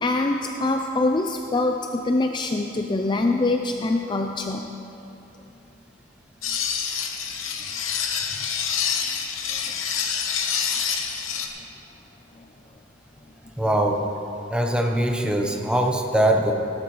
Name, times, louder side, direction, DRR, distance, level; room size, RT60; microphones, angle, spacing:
voice 1, 0.0-1.8 2.0-4.7 9.6-9.7, left 2 dB, 25° left, 3 dB, 0.4 m, -24 dB
sound 1, 6.4-11.5, left 7 dB, 85° left, 1.0 m, -27 dB
voice 2, 13.6-14.0 14.5-16.5, right 1 dB, 5° right, 2 dB, 0.8 m, -22 dB
17.0 x 12.0 x 3.1 m, 2.9 s
head